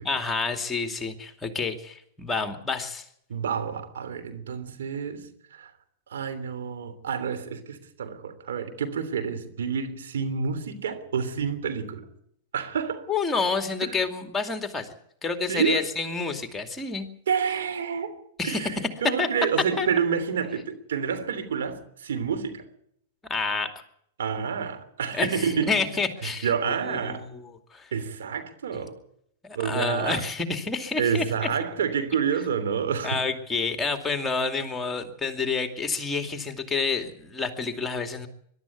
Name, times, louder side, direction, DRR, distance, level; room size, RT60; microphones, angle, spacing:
voice 1, 0.0-3.0 13.1-14.9 15.2-17.1 18.4-18.7 19.2-19.3 19.8-19.9 23.3-23.7 25.1-26.5 26.8-27.3 27.7-27.9 29.4-31.2 33.0-38.3, left 4 dB, 15° left, 2.5 m, -28 dB
voice 2, 3.3-5.7 6.1-12.0 12.5-13.0 13.8-14.0 15.5-15.9 17.3-18.2 18.4-22.6 24.2-25.8 26.2-27.3 27.9-29.0 29.5-30.2 31.0-33.2, right 6 dB, 75° right, 3.2 m, -29 dB
22.0 x 12.5 x 9.4 m
hypercardioid pair, 110°, 0 cm